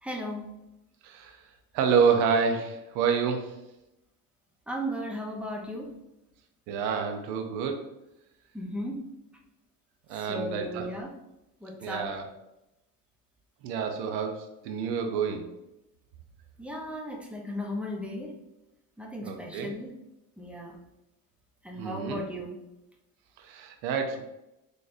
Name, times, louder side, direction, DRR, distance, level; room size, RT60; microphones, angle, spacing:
voice 1, 0.0-0.4 4.7-5.9 8.5-9.0 10.1-11.1 11.6-12.1 16.6-18.3 19.0-19.9 20.4-20.8 21.6-22.6, equal, 5° right, 1 dB, 0.8 m, -36 dB
voice 2, 1.0-1.4 1.7-3.6 6.7-7.8 10.1-10.9 11.8-12.3 13.6-15.5 19.2-19.7 21.8-22.2 23.4-24.2, right 6 dB, 80° right, 4 dB, 0.7 m, -28 dB
4.0 x 3.2 x 2.6 m, 0.92 s
supercardioid pair, 95°, 38 cm